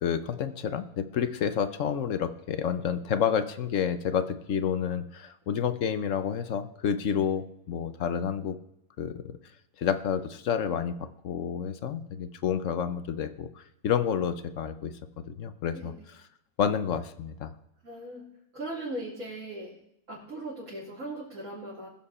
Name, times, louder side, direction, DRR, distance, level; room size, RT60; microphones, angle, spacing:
voice 1, 0.0-8.6 9.0-9.3 9.8-14.9 15.3-15.9 16.6-17.5, left 8 dB, 55° left, 11 dB, 1.0 m, -29 dB
voice 2, 17.8-18.3 18.5-19.8 20.1-21.9, right 1 dB, 45° right, -8 dB, 3.7 m, -38 dB
20.5 x 7.5 x 4.3 m, 0.79 s
omnidirectional pair, 1.8 m